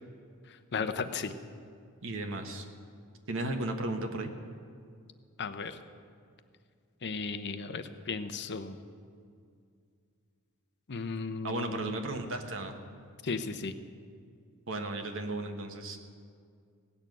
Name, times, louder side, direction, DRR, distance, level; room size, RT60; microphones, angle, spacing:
voice 1, 0.7-1.3 5.4-5.8 7.0-8.8 10.9-11.9 13.2-13.7, left 4 dB, 55° left, 10 dB, 0.8 m, -35 dB
voice 2, 2.0-2.7 3.3-4.3 11.4-12.8 14.7-16.0, right 2 dB, 65° right, 5 dB, 1.3 m, -35 dB
17.5 x 6.9 x 9.1 m, 2.3 s
head